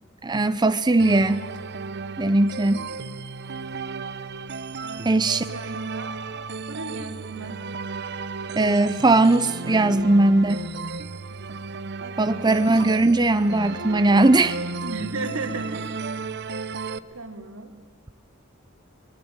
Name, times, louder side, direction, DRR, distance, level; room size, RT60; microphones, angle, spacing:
voice 1, 0.2-1.4 2.2-2.9 5.0-5.4 8.5-10.6 12.2-14.6, right 2 dB, 20° right, 12 dB, 0.7 m, -19 dB
sound 1, 1.0-17.0, right 4 dB, 55° right, 0.8 m, -34 dB
voice 2, 4.8-7.6 11.3-11.7 12.0-12.5 14.8-15.9 17.1-17.7, right 3 dB, 85° right, 5 dB, 3.2 m, -36 dB
24.5 x 21.0 x 8.9 m, 1.4 s
head